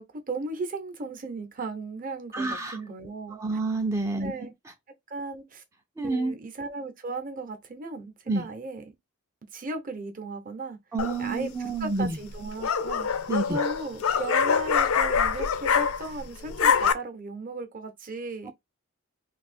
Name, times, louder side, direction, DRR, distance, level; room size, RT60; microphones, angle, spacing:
voice 1, 0.0-3.6 4.2-4.5 5.1-5.6 6.0-9.0 9.5-10.8 11.2-13.1 13.5-18.5, right 3 dB, 40° right, 0.8 m, -36 dB
voice 2, 2.3-2.8 3.3-4.3 6.0-6.3 8.3-8.5 10.9-12.2 13.3-13.6, right 3 dB, 15° right, 0.4 m, -28 dB
sound 1, 11.0-11.4 12.3-16.2 16.5-16.9, left 6 dB, 80° left, 0.5 m, -24 dB
2.7 x 2.4 x 4.2 m
head